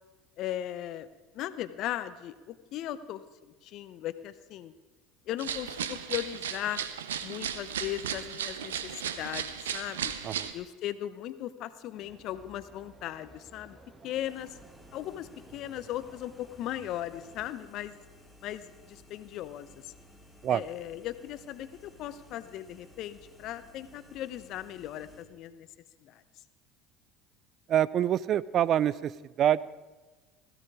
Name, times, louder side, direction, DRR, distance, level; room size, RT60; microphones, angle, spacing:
voice 1, 0.4-1.1 1.3-4.7 5.3-6.8 7.2-10.1 10.5-13.8 14.0-14.6 14.9-18.0 18.4-19.9 20.5-25.7 26.0-26.2, left 12 dB, 55° left, 14 dB, 0.9 m, -38 dB
sound 1, 5.4-10.5, right 9 dB, 85° right, 0.8 m, -35 dB
sound 2, 11.9-17.5, right 3 dB, 25° right, 1.7 m, -56 dB
sound 3, 14.1-25.2, equal, 10° left, 4.0 m, -57 dB
voice 2, 27.7-29.6, right 10 dB, 50° right, 20 dB, 0.5 m, -26 dB
17.0 x 14.0 x 4.9 m, 1.3 s
hypercardioid pair, 70°, 0 cm